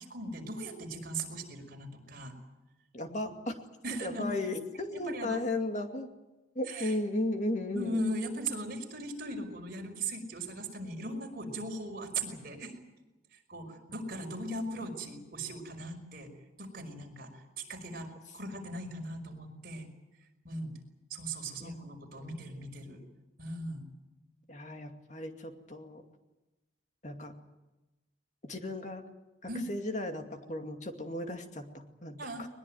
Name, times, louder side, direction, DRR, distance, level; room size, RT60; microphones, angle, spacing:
voice 1, 0.1-2.3 3.8-4.4 5.1-5.4 6.7-7.0 7.7-12.7 13.5-16.3 16.6-17.3 17.6-19.9 20.4-20.7 21.1-23.0 23.4-23.8 29.5-29.7 32.2-32.5, right 1 dB, 50° right, 2 dB, 5.3 m, -38 dB
voice 2, 2.9-3.6 3.9-6.1 6.6-8.0 21.6-21.8 22.2-22.3 24.5-26.0 27.0-27.4 28.4-29.0 29.7-32.5, left 1 dB, 40° left, 5 dB, 2.4 m, -35 dB
21.5 x 21.5 x 9.3 m, 1.1 s
head